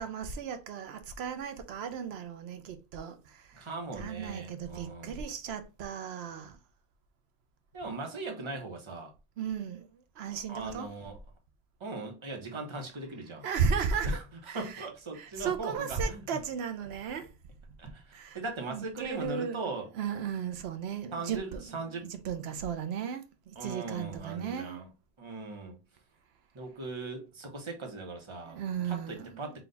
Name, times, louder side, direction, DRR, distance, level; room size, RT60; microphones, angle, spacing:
voice 1, 0.0-3.5 4.0-6.5 9.4-9.8 10.2-10.9 13.4-14.1 14.5-14.8 15.1-17.3 18.1-18.4 18.7-19.6 20.0-21.7 22.2-24.8 28.5-29.6, right 6 dB, 85° right, 0.9 m, -35 dB
voice 2, 3.5-5.2 7.7-9.1 10.3-11.2 11.8-13.5 14.0-16.4 17.8-19.9 21.1-22.1 23.6-24.9 25.2-25.8 26.5-28.6 28.8-29.6, right 3 dB, 30° right, 0.9 m, -39 dB
3.9 x 2.3 x 3.8 m
omnidirectional pair, 1.0 m